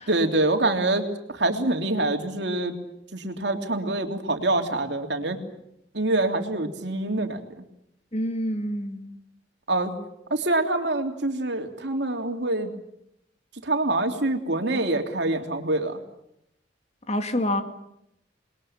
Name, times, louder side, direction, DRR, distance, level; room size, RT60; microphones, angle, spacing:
voice 1, 0.1-2.8 3.1-5.4 5.9-7.4 9.7-9.9 10.3-12.7 13.6-16.0, right 2 dB, 65° right, 3.2 m, -25 dB
voice 2, 8.1-9.2 17.1-17.6, left 1 dB, 35° left, 2.3 m, -27 dB
29.0 x 21.5 x 8.8 m
head